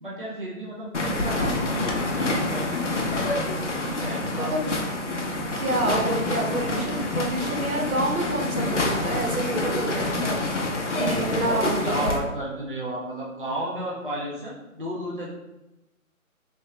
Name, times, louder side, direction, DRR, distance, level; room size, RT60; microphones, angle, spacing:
voice 1, 0.0-2.8 3.8-4.6 11.0-15.3, right 1 dB, 40° right, -6 dB, 0.5 m, -33 dB
sound 1, 0.9-12.2, left 2 dB, 55° left, 0.6 m, -27 dB
voice 2, 4.3-4.7 5.0-5.1 5.5-10.7 11.0-12.2, right 2 dB, 75° right, 2 dB, 0.9 m, -28 dB
3.3 x 2.7 x 3.1 m, 0.99 s
hypercardioid pair, 180°, 43 cm